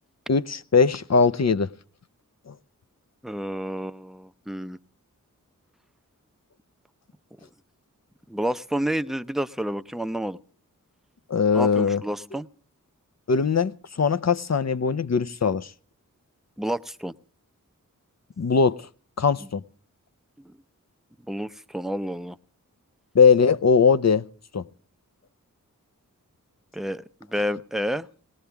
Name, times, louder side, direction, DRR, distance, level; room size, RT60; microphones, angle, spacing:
voice 1, 0.3-1.7 2.5-2.6 11.3-12.0 13.3-15.7 18.4-18.8 19.2-19.6 23.1-24.2 24.5-24.6, left 5 dB, 50° left, 0.7 m, -20 dB
voice 2, 3.2-4.8 8.3-10.4 11.5-12.5 16.6-17.1 20.4-20.5 21.3-22.4 26.7-28.1, equal, ahead, 0.6 m, -29 dB
19.5 x 18.5 x 3.5 m
wide cardioid pair, 50°, 33 cm